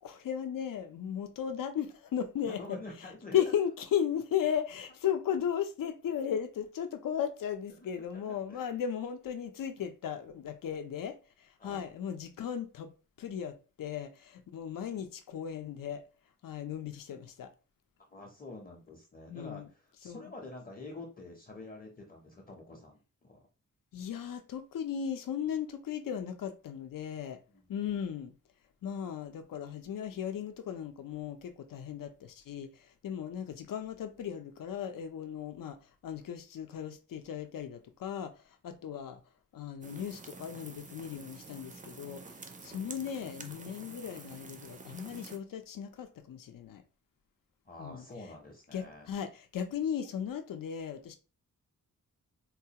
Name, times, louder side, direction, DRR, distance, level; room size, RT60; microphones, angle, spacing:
voice 1, 0.0-2.8 3.3-12.9 13.2-16.0 16.4-17.5 19.3-19.7 20.0-20.3 23.9-27.4 27.7-28.3 28.8-39.2 39.5-46.8 47.8-48.0 48.7-51.2, left 9 dB, 85° left, 0.6 m, -36 dB
voice 2, 2.4-3.4 8.2-8.7 11.6-11.8 18.1-19.6 20.0-23.4 27.5-27.6 47.7-49.1, left 2 dB, 25° left, 0.6 m, -47 dB
sound 1, 39.8-45.4, right 3 dB, 25° right, 0.4 m, -49 dB
4.0 x 2.3 x 2.8 m
wide cardioid pair, 175°, 32 cm